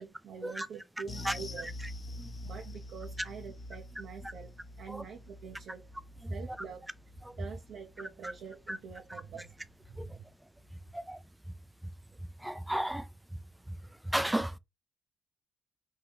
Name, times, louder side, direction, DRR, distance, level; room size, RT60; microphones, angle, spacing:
voice 1, 0.0-1.7 2.4-5.9 6.3-6.8 7.4-9.6 9.9-10.3, right 6 dB, 70° right, 0.7 m, -45 dB
sound 1, 1.1-9.7 10.0-10.2 10.6-10.7, left 1 dB, 35° left, 0.8 m, -46 dB
voice 2, 12.4-13.1 13.7-13.8 14.0-14.6, right 1 dB, 5° right, 0.4 m, -33 dB
4.6 x 2.8 x 3.4 m
cardioid pair, 90°, 0 cm